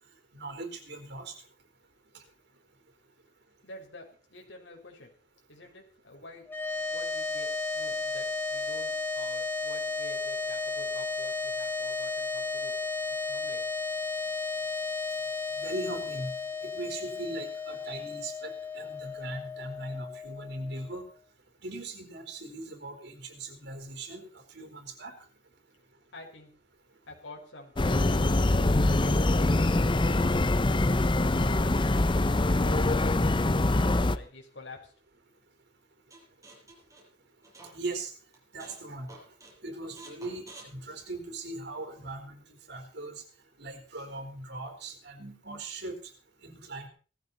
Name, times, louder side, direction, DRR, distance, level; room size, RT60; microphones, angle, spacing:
voice 1, 0.3-1.3 15.5-16.3 16.7-21.0 21.6-25.1 37.7-38.1 38.5-39.1 39.6-42.4 42.7-43.1 43.6-46.0 46.4-46.9, right 2 dB, 65° right, 5 dB, 4.4 m, -39 dB
voice 2, 3.6-5.1 5.5-6.5 6.9-12.7 13.1-13.7 26.1-26.5 27.1-28.8 29.1-29.7 30.0-30.2 30.6-34.9, left 2 dB, 80° left, 1 dB, 5.3 m, -49 dB
sound 1, 6.5-20.9, left 4 dB, 10° left, 3.2 m, -34 dB
sound 2, 27.8-34.2, left 2 dB, 25° left, 0.7 m, -24 dB
sound 3, 36.1-38.0 38.3-38.8 39.1-39.5 40.0-41.6, right 2 dB, 20° right, 6.3 m, -50 dB
18.5 x 14.5 x 4.2 m, 0.39 s
head